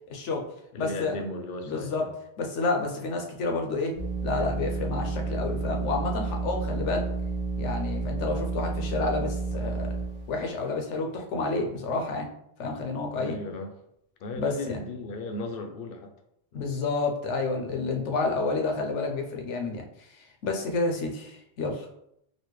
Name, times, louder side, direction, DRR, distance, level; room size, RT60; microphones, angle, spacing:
voice 1, 0.1-0.4 0.8-1.2 1.7-2.1 2.4-4.0 4.2-7.1 7.6-9.9 10.3-12.3 12.6-13.4 14.3-14.8 16.5-21.9, left 3 dB, 80° left, 2 dB, 1.0 m, -30 dB
voice 2, 0.7-2.1 13.2-13.7 14.2-16.1 16.5-16.6, left 2 dB, 60° left, 5 dB, 0.7 m, -36 dB
sound 1, 4.0-10.4, right 3 dB, 30° right, 0.7 m, -31 dB
4.1 x 2.1 x 3.1 m, 0.75 s
omnidirectional pair, 1.2 m